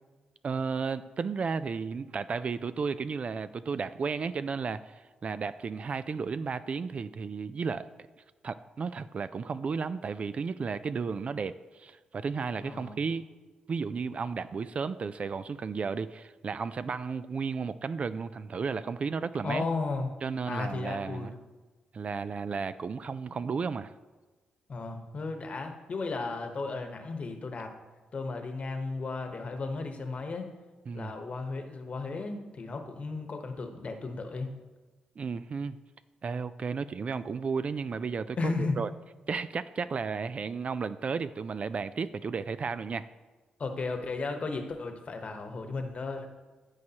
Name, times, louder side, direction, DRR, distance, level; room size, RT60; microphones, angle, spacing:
voice 1, 0.4-7.9 8.4-13.2 13.7-19.6 20.2-21.3 21.9-23.9 30.9-31.1 35.2-35.8 36.2-38.9 39.3-43.1, right 5 dB, 50° right, 14 dB, 0.3 m, -33 dB
voice 2, 12.6-13.0 19.4-20.1 20.5-21.3 24.7-27.7 28.1-30.5 30.9-34.5 38.4-38.8 43.6-46.3, left 3 dB, 50° left, 5 dB, 1.1 m, -34 dB
14.0 x 4.8 x 2.9 m, 1.2 s
cardioid pair, 65°, 3 cm